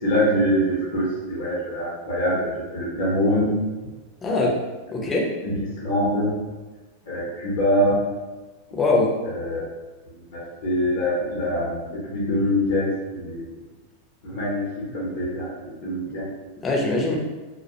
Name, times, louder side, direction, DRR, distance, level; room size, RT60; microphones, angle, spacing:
voice 1, 0.0-3.6 5.4-6.3 7.1-8.0 9.3-9.6 10.3-13.5 14.2-16.3, equal, 55° left, -6 dB, 0.7 m, -24 dB
voice 2, 4.2-4.6 4.9-5.3 8.7-9.1 16.1-16.2 16.6-17.1, left 2 dB, 15° left, -3 dB, 0.6 m, -22 dB
2.2 x 2.1 x 2.8 m, 1.2 s
figure-of-eight pair, 90°, 0 cm